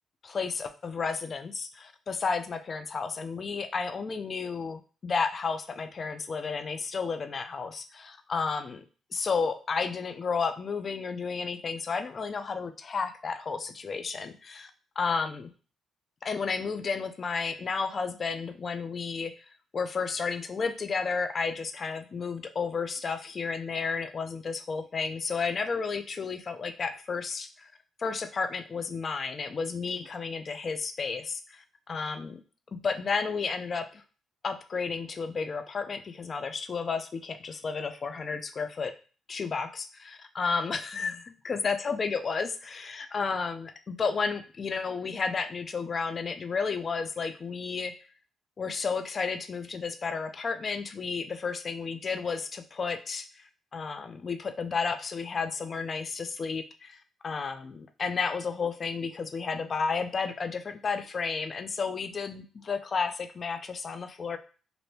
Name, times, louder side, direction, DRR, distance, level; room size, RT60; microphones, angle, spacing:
voice 1, 0.2-8.8 9.1-14.7 15.0-15.5 16.2-19.4 19.7-27.7 28.0-32.4 32.8-34.0 34.4-38.9 39.3-47.9 48.6-53.4 53.7-57.0 57.2-64.4, left 5 dB, 40° left, 9 dB, 0.3 m, -32 dB
2.9 x 2.5 x 3.1 m, 0.37 s
cardioid pair, 90°, 0 cm